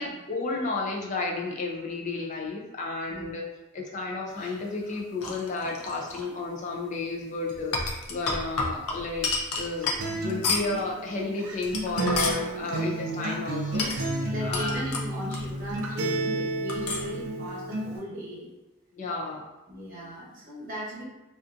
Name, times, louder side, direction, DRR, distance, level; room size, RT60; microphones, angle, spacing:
voice 1, 0.0-3.4 3.7-9.3 9.6-14.9 18.9-19.5, left 3 dB, 35° left, -1 dB, 0.4 m, -32 dB
sound 1, 4.4-6.3 7.5-10.8 11.5-12.4 13.7-15.8 16.1-16.2 16.7-17.2, left 3 dB, 90° left, 0.5 m, -31 dB
Acoustic guitar, 10.0-18.0, right 2 dB, 75° right, 0.4 m, -31 dB
voice 2, 14.3-18.5 19.7-21.0, equal, 40° right, -6 dB, 0.9 m, -38 dB
2.5 x 2.4 x 2.4 m, 1.0 s
head